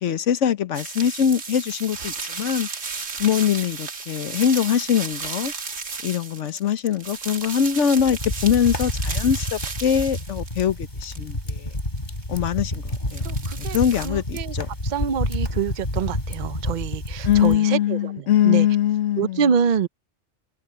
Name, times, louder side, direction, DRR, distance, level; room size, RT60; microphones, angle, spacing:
voice 1, 0.0-2.7 3.2-5.5 6.0-11.7 12.3-13.2 13.6-14.7 17.2-19.5, left 9 dB, 80° left, 1.3 m, -22 dB
sound 1, 0.7-10.7 11.1-12.5 12.9-14.1, right 4 dB, 85° right, 2.1 m, -34 dB
sound 2, 8.0-17.6, left 1 dB, 40° left, 6.0 m, -29 dB
voice 2, 13.2-13.8 14.0-14.5 14.8-18.1 18.4-18.7 19.2-19.9, right 7 dB, 45° right, 0.7 m, -25 dB
omnidirectional pair, 1.2 m